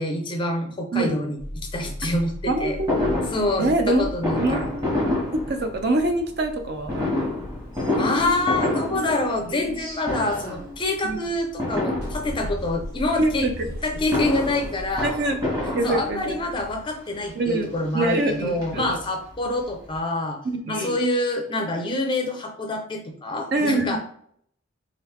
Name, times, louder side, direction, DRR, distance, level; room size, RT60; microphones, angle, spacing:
voice 1, 0.0-1.4 1.7-2.8 3.3-4.7 8.0-13.5 13.8-15.1 15.8-20.4 20.7-24.0, left 2 dB, 25° left, 3 dB, 0.4 m, -26 dB
sound 1, 1.4-17.0, equal, 90° right, 1.5 m, -37 dB
voice 2, 2.5-3.2 3.6-4.1 4.4-4.8 5.5-7.3 11.0-11.2 13.2-13.5 15.0-15.4 15.7-16.3 17.4-17.7 17.9-19.0 20.4-21.0 23.5-24.0, right 2 dB, 50° right, 6 dB, 0.6 m, -24 dB
Fireworks, 2.9-6.1 6.9-9.8 10.0-10.7 11.6-12.7 13.8-16.5 17.3-17.4 17.7-17.8 18.1-19.3 19.6-19.7 19.9-20.0, left 2 dB, 20° right, 1.3 m, -28 dB
3.8 x 3.2 x 3.2 m, 0.64 s
head